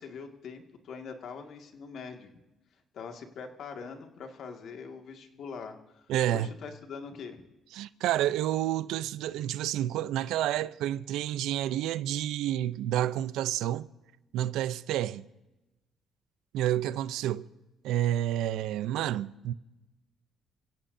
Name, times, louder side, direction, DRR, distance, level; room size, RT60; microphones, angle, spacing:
voice 1, 0.0-2.3 2.9-7.5, left 5 dB, 65° left, 2.0 m, -43 dB
voice 2, 6.1-6.5 7.7-13.9 14.3-15.3 16.5-17.5 17.8-19.5, right 12 dB, 85° right, 0.5 m, -29 dB
29.0 x 16.5 x 2.7 m
cardioid pair, 90°, 0 cm